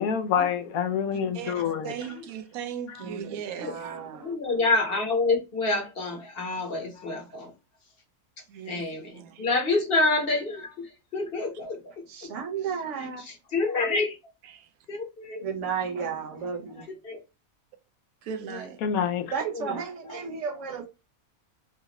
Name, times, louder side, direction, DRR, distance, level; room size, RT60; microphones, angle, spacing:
voice 1, 0.0-1.9 3.0-3.1 18.8-19.3, left 7 dB, 90° left, 1.2 m, -27 dB
voice 2, 1.1-3.9 8.5-8.8 9.1-9.5 14.4-14.7 18.2-18.8, right 8 dB, 90° right, 1.0 m, -38 dB
voice 3, 3.0-4.3 12.1-13.2 15.4-16.8 19.3-20.9, right 6 dB, 60° right, 1.3 m, -33 dB
voice 4, 4.2-7.5 8.7-12.3 13.2-14.2 14.9-15.0 15.3-15.4 17.0-17.2 19.5-19.8 20.1-20.2, left 3 dB, 45° left, 1.3 m, -27 dB
4.9 x 2.5 x 2.9 m
omnidirectional pair, 1.5 m